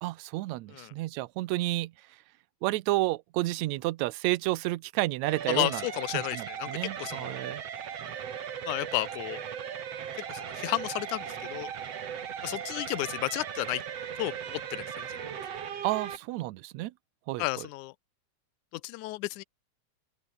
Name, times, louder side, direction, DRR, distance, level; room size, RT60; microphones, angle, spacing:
voice 1, 0.0-2.2 2.6-5.8 6.1-7.6 15.8-16.9 17.3-17.7, right 18 dB, 75° right, 1.8 m, -31 dB
sound 1, 5.3-16.2, right 8 dB, 55° right, 2.8 m, -38 dB
voice 2, 5.5-6.7 7.0-7.4 8.6-9.4 10.3-11.7 12.4-13.8 14.2-15.3 17.4-17.9 18.7-19.4, left 19 dB, 80° left, 2.1 m, -32 dB
open air
omnidirectional pair, 3.6 m